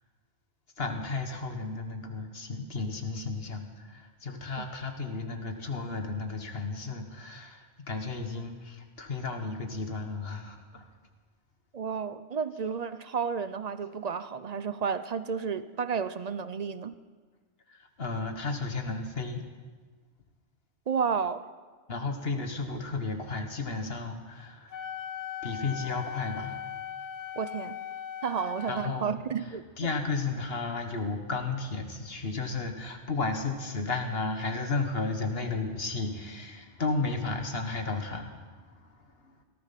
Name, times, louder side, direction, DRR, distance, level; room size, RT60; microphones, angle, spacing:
voice 1, 0.8-10.9 17.7-19.4 21.9-24.9 25.4-26.6 28.7-39.4, left 3 dB, 55° left, 5 dB, 1.7 m, -33 dB
voice 2, 11.7-16.9 20.9-21.5 27.4-27.8 28.2-29.6, right 6 dB, 45° right, 13 dB, 0.5 m, -31 dB
Wind instrument woodwind instrument, 24.7-28.9, left 9 dB, 90° left, 1.2 m, -39 dB
18.0 x 14.0 x 5.8 m, 1.4 s
omnidirectional pair, 1.2 m